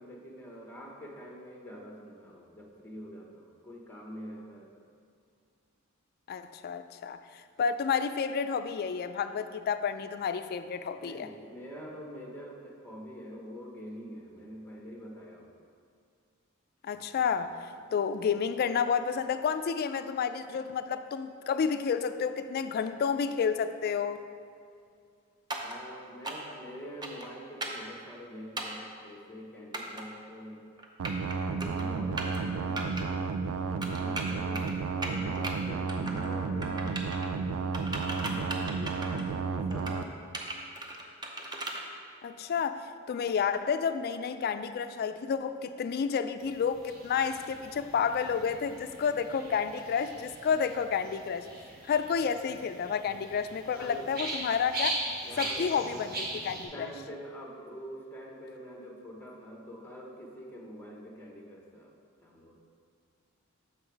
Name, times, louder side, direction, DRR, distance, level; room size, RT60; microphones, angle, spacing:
voice 1, 0.0-4.8 11.0-15.7 25.6-30.6 31.4-34.7 35.0-36.9 38.1-40.4 53.8-54.1 55.2-56.2 56.5-61.9 62.2-62.6, equal, 10° left, -1 dB, 0.9 m, -45 dB
voice 2, 6.3-11.3 16.8-24.2 42.2-51.5 51.9-55.0 55.4-56.9, left 6 dB, 50° left, 11 dB, 0.3 m, -30 dB
sound 1, 25.5-25.8 26.2-26.5 27.0-27.3 27.6-27.8 28.6-28.8 29.7-30.0 30.8-31.3 31.6-31.8 32.2-32.4 32.8-33.0 33.8-34.7 35.0-35.5 35.9-36.4 36.6-37.3 37.7-39.3 39.7-40.0 40.3-41.8, right 2 dB, 20° right, 0.6 m, -37 dB
sound 2, 31.0-40.0, right 4 dB, 90° right, 0.4 m, -32 dB
sound 3, 46.4-56.6, right 1 dB, 50° right, 1.2 m, -40 dB
6.8 x 5.6 x 4.6 m, 2.3 s
head